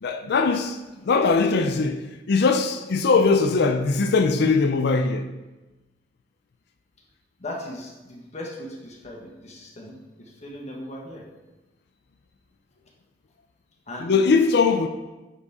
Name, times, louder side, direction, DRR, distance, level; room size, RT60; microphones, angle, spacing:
voice 1, 0.0-5.3 14.0-14.9, left 4 dB, 60° left, 0.4 m, -21 dB
voice 2, 7.4-11.2 13.9-14.1, left 1 dB, 40° left, 1.1 m, -38 dB
10.0 x 3.5 x 4.1 m
head